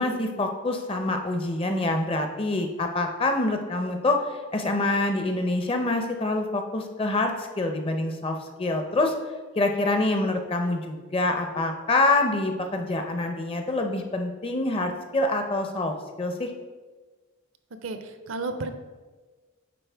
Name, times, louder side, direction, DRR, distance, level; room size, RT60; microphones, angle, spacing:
voice 1, 0.0-9.1 9.6-16.5, left 2 dB, 25° left, 5 dB, 0.5 m, -26 dB
voice 2, 17.8-18.8, right 3 dB, 60° right, 9 dB, 0.5 m, -32 dB
9.1 x 4.1 x 3.4 m, 1.3 s
head